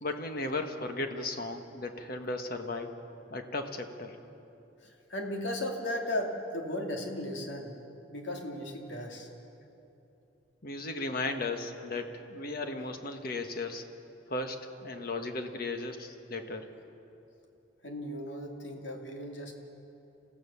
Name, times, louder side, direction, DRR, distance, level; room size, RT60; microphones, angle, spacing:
voice 1, 0.0-2.9 3.3-4.2 10.6-13.8 14.3-16.7, left 2 dB, 50° left, 6 dB, 1.5 m, -36 dB
voice 2, 4.8-7.7 8.1-9.3 17.8-19.5, left 1 dB, 70° left, 2 dB, 2.6 m, -36 dB
28.0 x 15.5 x 7.0 m, 2.9 s
head